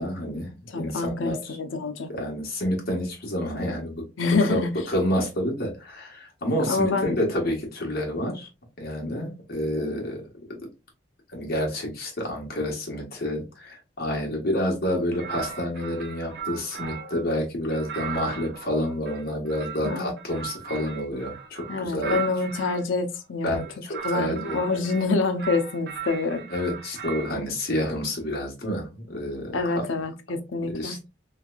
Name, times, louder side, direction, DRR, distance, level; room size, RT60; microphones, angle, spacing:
voice 1, 0.0-1.6 2.1-4.0 4.5-8.5 8.8-10.2 10.5-10.7 11.3-22.2 23.4-24.6 26.5-29.7 30.7-31.1, left 1 dB, 55° left, 1.3 m, -29 dB
voice 2, 0.7-2.1 4.2-4.7 6.7-7.2 19.8-20.1 21.7-23.7 24.0-26.4 29.5-31.0, left 3 dB, 80° left, 0.6 m, -26 dB
sound 1, 15.1-17.2 17.7-22.8 23.5-25.1 25.4-27.4, right 7 dB, 55° right, 0.7 m, -37 dB
3.3 x 3.2 x 2.4 m
head